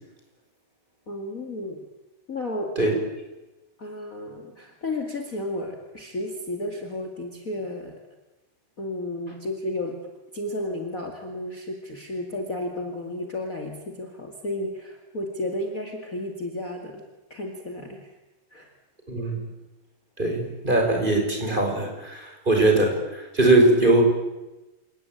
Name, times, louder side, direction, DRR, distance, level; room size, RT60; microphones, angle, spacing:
voice 1, 1.1-1.8 2.3-2.7 3.8-7.9 8.8-10.0 10.3-17.0 17.3-18.1 18.5-18.7, left 1 dB, 40° left, 3 dB, 1.2 m, -32 dB
voice 2, 19.1-19.4 20.2-24.0, right 2 dB, 10° right, 2 dB, 5.2 m, -21 dB
27.5 x 18.5 x 9.2 m, 1.1 s
omnidirectional pair, 5.3 m